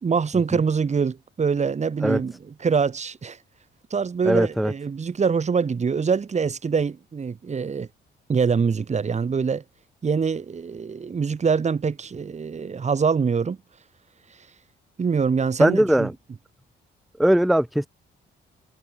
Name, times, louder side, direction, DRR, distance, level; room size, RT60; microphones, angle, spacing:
voice 1, 0.0-3.4 3.9-7.9 8.3-9.6 10.0-13.6 15.0-16.1, right 5 dB, 35° right, 2.0 m, -24 dB
voice 2, 4.2-4.7 15.6-16.1 17.2-17.9, right 1 dB, ahead, 0.5 m, -19 dB
cardioid pair, 90°, 20 cm